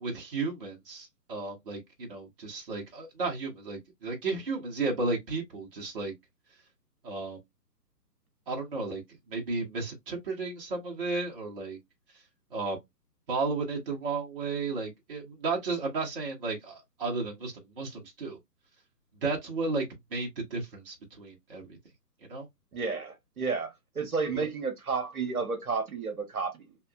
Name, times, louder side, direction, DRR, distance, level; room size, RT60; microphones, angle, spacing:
voice 1, 0.0-6.1 7.0-7.4 8.5-9.0 9.3-11.8 12.5-12.8 13.3-18.4 19.2-19.8 20.1-21.8 22.3-22.5 24.3-24.5, right 3 dB, 35° right, 1.0 m, -33 dB
voice 2, 22.7-26.8, right 4 dB, 60° right, 1.2 m, -32 dB
3.4 x 3.0 x 2.2 m
figure-of-eight pair, 135°, 49 cm